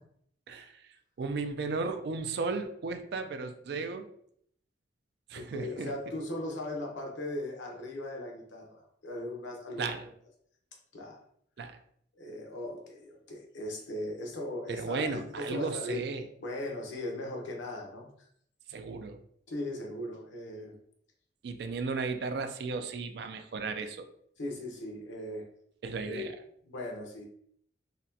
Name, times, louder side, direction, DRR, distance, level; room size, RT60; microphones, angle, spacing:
voice 1, 1.2-4.0 5.3-5.9 9.8-10.1 11.6-11.8 14.7-16.2 18.7-19.2 21.4-24.1 25.8-26.4, right 4 dB, 60° right, 8 dB, 0.3 m, -35 dB
voice 2, 5.3-10.0 10.9-11.2 12.2-16.1 16.4-18.3 19.5-20.8 24.4-25.5 26.0-26.3 26.6-27.3, left 1 dB, 80° left, 1 dB, 0.8 m, -38 dB
4.0 x 2.1 x 2.6 m, 0.67 s
head